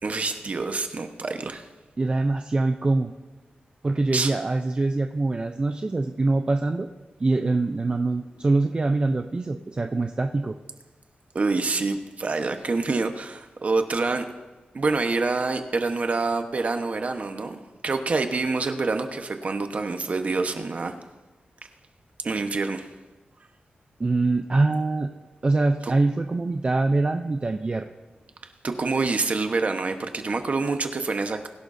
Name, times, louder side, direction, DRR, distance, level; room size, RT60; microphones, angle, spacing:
voice 1, 0.0-1.6 4.1-4.3 11.3-14.3 14.7-20.9 22.2-22.9 25.8-25.9 28.6-31.5, right 3 dB, 45° right, 6 dB, 1.1 m, -26 dB
voice 2, 2.0-3.1 3.8-6.9 7.2-10.5 24.0-25.1 25.4-27.9, right 2 dB, 30° right, 5 dB, 0.6 m, -24 dB
22.5 x 11.5 x 2.7 m, 1.2 s
wide cardioid pair, 115°, 3 cm